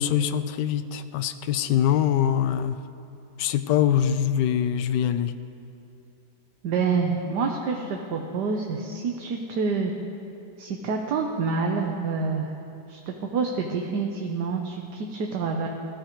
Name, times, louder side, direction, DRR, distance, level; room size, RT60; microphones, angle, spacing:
voice 1, 0.0-2.8 3.4-5.3, left 9 dB, 85° left, 11 dB, 1.3 m, -23 dB
voice 2, 6.6-9.9 10.6-12.5 12.9-15.7, right 4 dB, 75° right, 2 dB, 1.4 m, -27 dB
21.0 x 14.0 x 3.1 m, 2.7 s
omnidirectional pair, 1.8 m